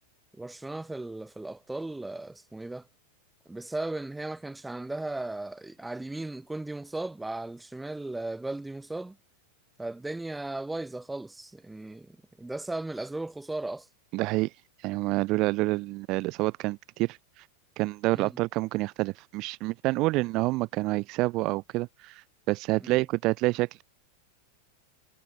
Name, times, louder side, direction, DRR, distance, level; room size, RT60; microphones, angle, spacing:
voice 1, 0.3-2.9 3.5-9.2 9.8-13.9 18.1-18.4 22.8-23.0, right 2 dB, 5° right, 3.6 m, -36 dB
voice 2, 14.1-14.5 14.8-17.2 17.8-23.8, right 21 dB, 50° right, 5.6 m, -28 dB
hypercardioid pair, 105°, 0 cm